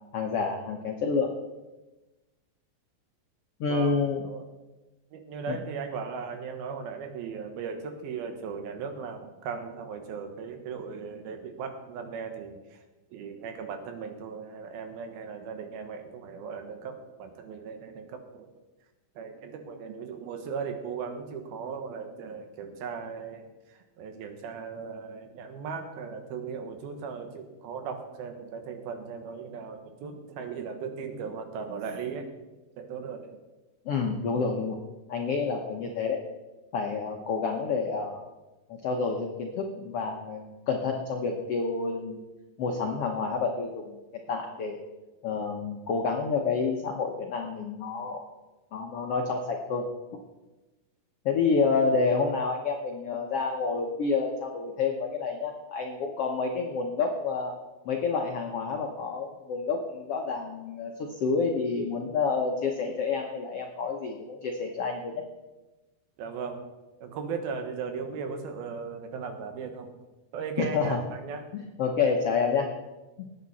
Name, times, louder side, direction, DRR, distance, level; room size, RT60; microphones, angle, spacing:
voice 1, 0.1-1.3 3.6-4.2 5.5-5.6 33.8-34.8 35.1-36.2 36.7-38.2 38.7-42.2 42.6-44.0 44.3-44.8 45.2-48.3 48.7-49.9 51.2-57.5 57.8-60.9 61.2-65.1 70.6-71.0 71.5-72.7 73.2-73.3, left 4 dB, 80° left, 2 dB, 1.3 m, -29 dB
voice 2, 3.7-4.5 5.1-12.8 13.1-18.5 19.2-32.3 32.8-33.4 66.2-66.6 67.0-70.0 70.3-71.4, right 5 dB, 80° right, 6 dB, 3.2 m, -37 dB
19.0 x 9.0 x 4.2 m, 1.1 s
omnidirectional pair, 4.3 m